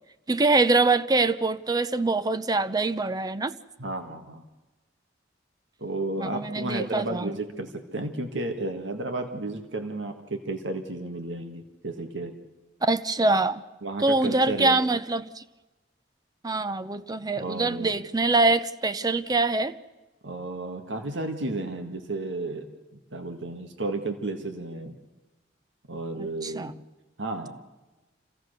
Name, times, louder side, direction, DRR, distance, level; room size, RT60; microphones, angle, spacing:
voice 1, 0.3-3.5 6.2-7.4 12.8-13.6 14.0-15.4 16.4-19.7 26.2-26.7, right 3 dB, 20° right, 0.6 m, -24 dB
voice 2, 3.8-4.4 5.8-12.4 13.8-14.8 17.4-17.9 20.2-22.7 23.1-25.0 25.9-26.7 27.2-27.6, right 2 dB, 85° right, 1.8 m, -32 dB
26.5 x 16.5 x 6.6 m
head